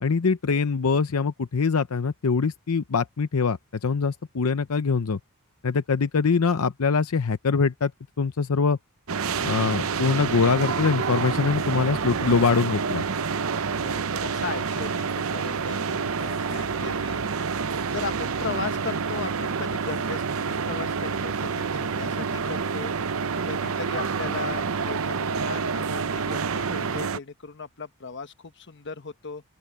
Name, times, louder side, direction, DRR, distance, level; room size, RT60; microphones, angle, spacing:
voice 1, 0.0-5.2 5.6-7.9 8.2-8.8 9.4-13.1, left 5 dB, 80° left, 0.7 m, -23 dB
sound 1, 9.1-27.2, right 5 dB, 65° right, 0.7 m, -28 dB
voice 2, 13.7-17.2 17.9-20.2 20.5-22.9 23.5-29.4, left 4 dB, 55° left, 1.2 m, -37 dB
open air
head